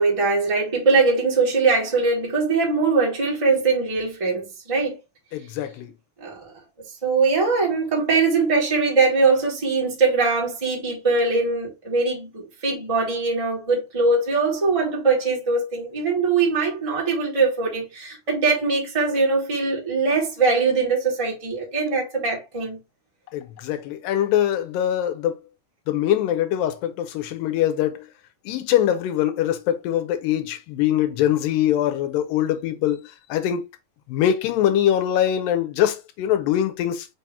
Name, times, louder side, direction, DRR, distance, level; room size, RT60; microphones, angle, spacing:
voice 1, 0.0-5.0 6.2-6.5 7.0-22.8, right 4 dB, 20° right, 0.8 m, -21 dB
voice 2, 5.3-5.9 23.3-25.4 25.9-28.1 28.5-33.6 34.1-37.1, left 11 dB, 80° left, 2.3 m, -23 dB
5.3 x 2.8 x 3.4 m
omnidirectional pair, 4.0 m